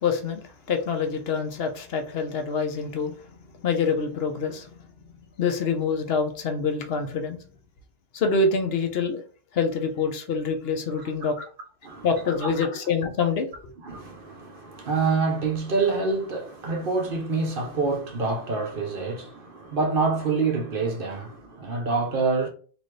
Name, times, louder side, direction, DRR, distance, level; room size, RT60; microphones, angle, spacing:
voice 1, 0.0-3.2 3.6-4.7 5.4-7.4 8.1-9.2 9.5-11.4 12.0-13.5, left 5 dB, 65° left, 0.9 m, -26 dB
voice 2, 13.8-22.5, right 4 dB, 55° right, 1.0 m, -26 dB
4.0 x 2.6 x 3.1 m
omnidirectional pair, 1.1 m